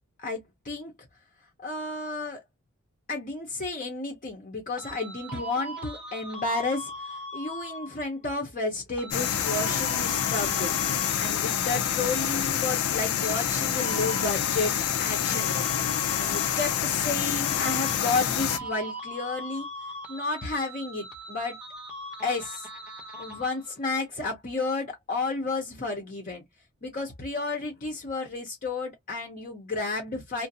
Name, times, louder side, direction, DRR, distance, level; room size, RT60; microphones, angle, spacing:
voice 1, 0.2-0.9 1.6-2.4 3.1-10.7 11.2-15.8 16.2-19.7 20.1-21.6 22.2-22.7 23.2-26.4 26.8-30.5, left 3 dB, 40° left, 0.7 m, -32 dB
sound 1, 4.8-8.1 9.0-12.8 13.2-17.2 17.4-23.8, equal, 5° right, 0.8 m, -40 dB
sound 2, 9.1-18.6, left 9 dB, 80° left, 0.5 m, -27 dB
2.4 x 2.1 x 2.7 m
head